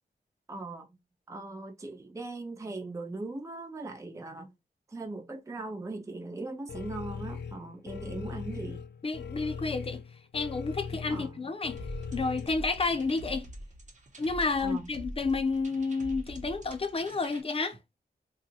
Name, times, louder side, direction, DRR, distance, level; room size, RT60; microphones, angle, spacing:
voice 1, 0.5-0.9 1.3-4.5 4.9-8.9 11.1-11.4 14.6-14.9, right 2 dB, 20° right, 0.5 m, -39 dB
sound 1, 6.7-12.5, left 6 dB, 90° left, 0.4 m, -40 dB
voice 2, 9.0-10.0 10.3-11.8 12.1-13.5 14.2-17.8, left 4 dB, 35° left, 0.6 m, -30 dB
sound 2, 11.8-17.4, equal, 45° right, 1.0 m, -44 dB
2.7 x 2.4 x 4.1 m
wide cardioid pair, 115°, 17 cm